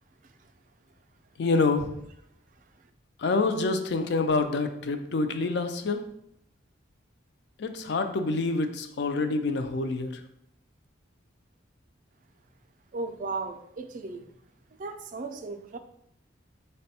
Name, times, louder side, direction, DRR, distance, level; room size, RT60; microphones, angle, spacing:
voice 1, 1.4-1.9 3.2-6.0 7.6-10.1, left 3 dB, 60° left, 8 dB, 0.4 m, -27 dB
voice 2, 12.9-14.3 14.8-15.8, right 3 dB, 40° right, 7 dB, 0.3 m, -36 dB
4.1 x 2.2 x 4.1 m, 0.76 s
head